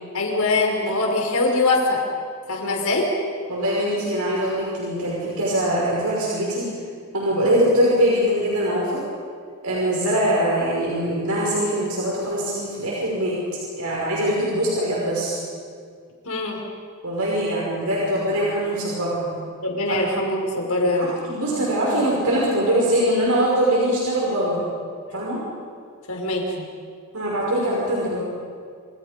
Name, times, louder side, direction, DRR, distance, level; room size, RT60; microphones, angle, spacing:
voice 1, 0.1-2.0 2.5-3.1 16.3-16.6 19.6-21.1 26.1-26.6, left 2 dB, 75° left, 0 dB, 5.5 m, -22 dB
voice 2, 3.5-6.7 7.1-9.0 9.6-13.3 13.8-15.4 17.0-19.3 20.8-24.6 25.1-25.4 27.1-28.2, right 1 dB, 80° right, -5 dB, 5.8 m, -22 dB
28.0 x 27.5 x 5.3 m, 2.2 s
head